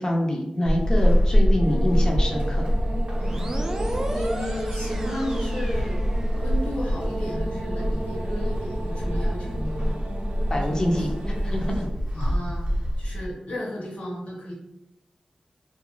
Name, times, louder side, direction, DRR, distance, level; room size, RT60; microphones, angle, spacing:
voice 1, 0.0-2.7 10.5-11.9, left 1 dB, 30° left, 0 dB, 0.5 m, -26 dB
Walk footsteps / Squeak, 0.7-13.3, equal, 45° right, 0.7 m, -25 dB
sound 1, 1.6-11.9, right 2 dB, 90° right, 0.5 m, -35 dB
voice 2, 3.2-3.7 4.1-6.1 6.4-9.9 10.7-11.1 12.1-12.7 13.0-14.5, left 1 dB, 70° left, -4 dB, 1.0 m, -34 dB
sound 2, 3.2-6.7, right 1 dB, 25° right, 0.3 m, -35 dB
2.5 x 2.2 x 2.9 m, 0.82 s
wide cardioid pair, 120°, 2 cm